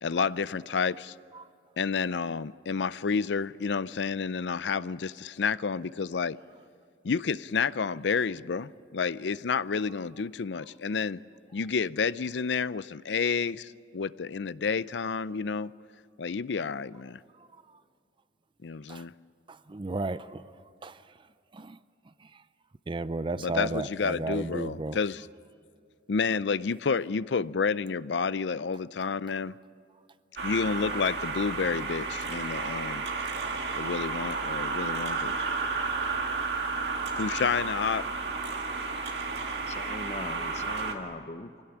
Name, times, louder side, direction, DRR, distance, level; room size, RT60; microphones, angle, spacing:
voice 1, 0.0-1.1 1.8-6.4 7.0-11.2 11.5-15.7 16.2-17.2 18.6-19.1 23.4-25.3 26.1-29.6 30.4-33.1 33.8-35.4 37.2-38.1, left 5 dB, 75° left, 0.5 m, -30 dB
voice 2, 19.5-20.4 20.8-21.0 21.5-21.8 22.9-25.0 30.8-31.0, right 2 dB, 30° right, 0.5 m, -34 dB
sound 1, 30.4-40.9, right 4 dB, 65° right, 2.2 m, -32 dB
voice 3, 39.7-41.6, left 2 dB, 40° left, 0.9 m, -40 dB
25.0 x 17.0 x 10.0 m
head